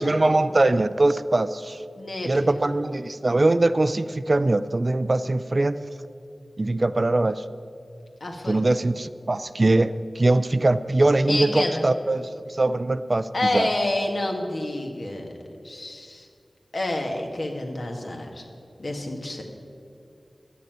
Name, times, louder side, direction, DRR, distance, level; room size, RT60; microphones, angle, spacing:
voice 1, 0.0-1.8 2.3-5.8 6.6-7.4 8.5-13.3 13.5-13.7, right 2 dB, 45° right, 13 dB, 0.4 m, -22 dB
voice 2, 2.0-2.6 8.2-8.7 11.3-11.9 13.3-15.3 15.6-16.3 16.7-18.4 18.8-19.4, left 1 dB, 60° left, 2 dB, 1.6 m, -28 dB
11.0 x 6.6 x 9.0 m, 2.4 s
wide cardioid pair, 65°, 0 cm